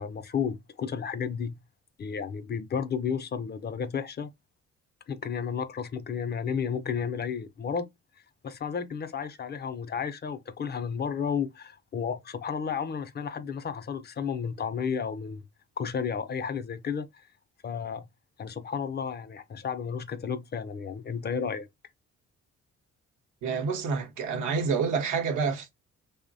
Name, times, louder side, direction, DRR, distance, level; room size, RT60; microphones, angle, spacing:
voice 1, 0.0-1.6 2.0-4.3 5.1-7.9 8.4-15.4 15.8-17.1 17.6-18.1 18.4-21.7, left 6 dB, 35° left, 0.4 m, -32 dB
voice 2, 23.4-25.7, right 5 dB, 85° right, 0.8 m, -28 dB
3.0 x 2.0 x 2.5 m
cardioid pair, 90°, 30 cm